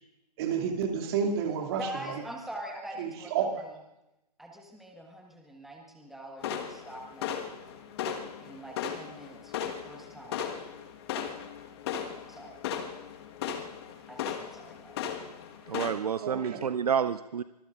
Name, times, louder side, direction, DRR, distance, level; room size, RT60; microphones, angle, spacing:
voice 1, 0.4-2.2 3.0-3.5 16.2-16.6, right 7 dB, 35° right, 2 dB, 2.6 m, -30 dB
voice 2, 1.8-3.8 4.4-7.5 8.4-10.5 12.3-12.6 14.1-15.0, right 1 dB, ahead, 1 dB, 1.5 m, -44 dB
sound 1, 6.4-15.9, left 8 dB, 40° left, 1.6 m, -37 dB
voice 3, 15.7-17.4, right 7 dB, 65° right, 13 dB, 0.6 m, -29 dB
24.5 x 21.0 x 2.6 m, 0.94 s
figure-of-eight pair, 130°, 21 cm